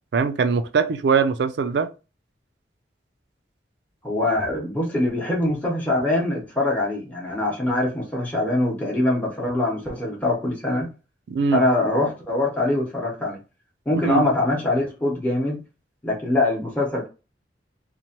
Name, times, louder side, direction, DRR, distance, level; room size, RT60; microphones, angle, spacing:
voice 1, 0.1-1.9 11.3-11.6 13.9-14.2, right 5 dB, 65° right, 0.4 m, -21 dB
voice 2, 4.0-10.9 11.5-13.4 13.9-15.6 16.0-17.1, left 2 dB, 10° left, 0.8 m, -23 dB
2.9 x 2.1 x 2.8 m
head